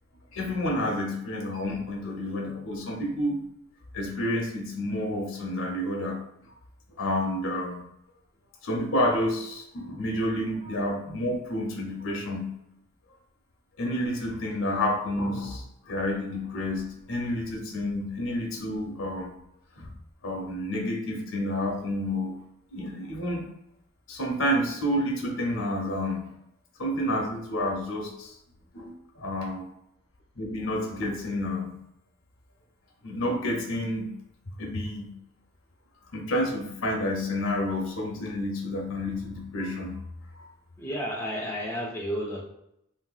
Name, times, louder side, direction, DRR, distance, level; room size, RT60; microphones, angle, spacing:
voice 1, 0.3-3.4 3.9-6.2 7.0-7.8 8.6-12.5 13.8-19.3 19.8-19.9 20.2-22.4 22.7-23.4 24.1-26.3 26.8-28.3 28.7-29.7 30.4-31.7 33.0-34.1 34.6-35.1 36.1-40.0 40.3-40.5, left 1 dB, 70° left, 1 dB, 0.7 m, -29 dB
voice 2, 40.8-42.4, equal, 10° left, -3 dB, 0.3 m, -32 dB
3.2 x 2.6 x 2.3 m, 0.79 s
head